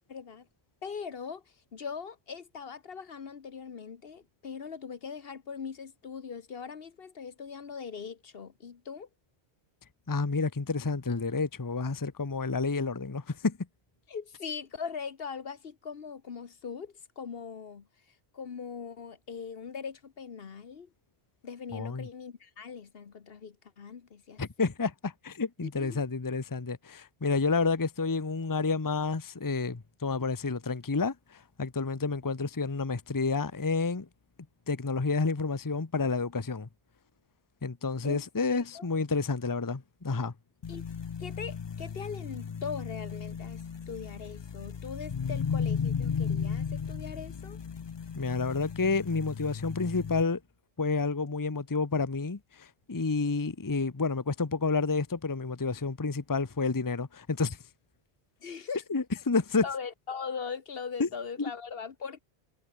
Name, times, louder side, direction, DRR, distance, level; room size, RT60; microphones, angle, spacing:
voice 1, 0.1-0.5 0.8-9.1 14.1-20.9 21.4-24.4 25.6-26.0 38.0-38.2 38.5-38.9 40.7-40.8 41.2-47.6 58.4-58.8 59.6-62.2, left 6 dB, 60° left, 1.3 m, -40 dB
voice 2, 10.1-13.6 21.7-22.1 24.4-34.1 34.7-36.7 37.6-40.3 48.2-50.4 50.8-57.6 58.9-59.6 61.0-61.1, left 4 dB, 20° left, 0.8 m, -30 dB
sound 1, 40.6-50.2, left 6 dB, 45° left, 0.3 m, -35 dB
omnidirectional pair, 1.1 m